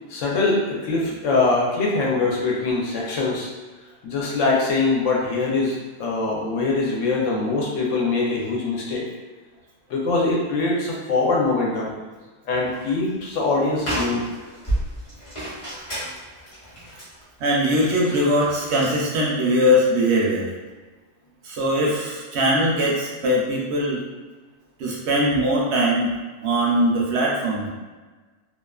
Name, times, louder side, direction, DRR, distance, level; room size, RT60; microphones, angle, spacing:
voice 1, 0.1-3.5 4.0-9.1 9.9-11.9 12.4-14.2, left 3 dB, 75° left, -3 dB, 0.9 m, -23 dB
sound 1, 12.5-13.0 13.3-13.4 13.7-19.0, right 1 dB, 30° left, 0.7 m, -32 dB
voice 2, 17.4-20.5 21.4-24.0 24.8-26.1 26.4-27.7, equal, 65° right, -3 dB, 0.8 m, -21 dB
2.4 x 2.4 x 2.2 m, 1.3 s
omnidirectional pair, 1.3 m